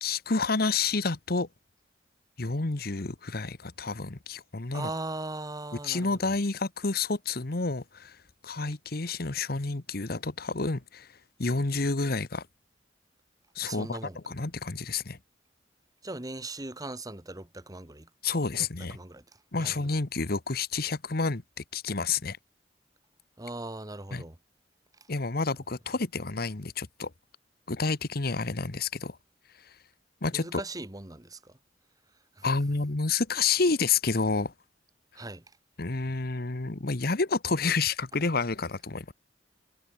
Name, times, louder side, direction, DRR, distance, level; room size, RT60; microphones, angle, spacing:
voice 1, 0.0-1.5 2.4-4.9 5.8-8.2 8.4-11.1 11.4-12.4 13.5-15.2 18.2-19.0 19.5-21.4 21.7-22.4 24.1-24.2 25.1-27.1 27.7-29.2 30.2-30.6 32.4-34.5 35.8-39.1, left 4 dB, 55° left, 1.2 m, -29 dB
voice 2, 4.7-6.3 13.6-14.2 16.0-18.1 18.5-19.2 19.6-19.8 23.4-24.4 30.3-31.6 32.4-32.5 35.1-35.4, right 2 dB, 20° right, 1.6 m, -39 dB
head